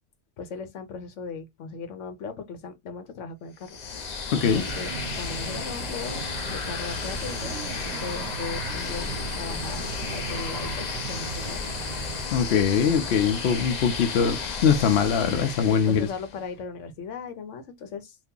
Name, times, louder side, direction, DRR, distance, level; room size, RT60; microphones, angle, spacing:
voice 1, 0.4-3.8 4.5-6.2 6.5-11.7 15.7-18.2, left 5 dB, 85° left, 1.1 m, -38 dB
sound 1, 3.6-16.4, left 5 dB, 45° left, 0.6 m, -33 dB
voice 2, 4.3-4.6 12.3-16.1, left 7 dB, 65° left, 0.9 m, -22 dB
sound 2, 4.4-12.3, right 8 dB, 70° right, 0.8 m, -38 dB
2.8 x 2.6 x 3.6 m
omnidirectional pair, 1.2 m